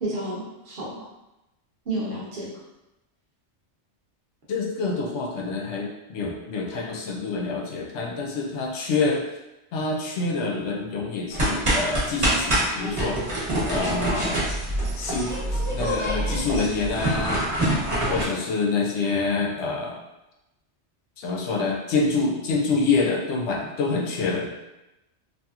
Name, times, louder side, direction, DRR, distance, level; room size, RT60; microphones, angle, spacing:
voice 1, 0.0-0.9 1.9-2.5, right 1 dB, 60° right, -6 dB, 1.0 m, -30 dB
voice 2, 4.5-9.2 9.7-13.2 13.7-14.4 15.0-17.4 18.1-20.0 21.2-24.5, left 3 dB, 80° left, 0 dB, 0.9 m, -26 dB
sound 1, 11.3-18.2, right 1 dB, 30° right, 0.8 m, -25 dB
2.8 x 2.6 x 2.3 m, 0.96 s
omnidirectional pair, 1.2 m